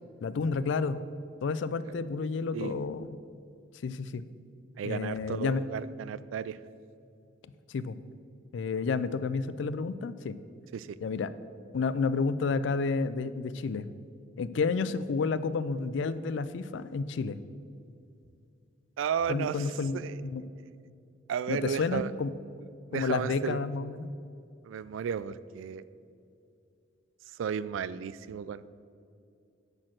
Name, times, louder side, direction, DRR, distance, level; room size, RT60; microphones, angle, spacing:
voice 1, 0.2-1.0 1.4-3.1 3.8-4.2 4.8-5.6 7.7-8.0 8.5-10.4 11.0-11.3 11.7-13.9 14.4-17.4 19.3-20.4 21.5-22.3 22.9-24.1, left 4 dB, 65° left, 15 dB, 0.4 m, -30 dB
voice 2, 4.8-6.6 10.7-11.0 19.0-19.6 19.9-20.2 21.3-22.1 22.9-23.7 24.6-25.8 27.3-28.6, right 7 dB, 85° right, 16 dB, 0.3 m, -33 dB
9.7 x 4.4 x 6.3 m, 2.5 s
head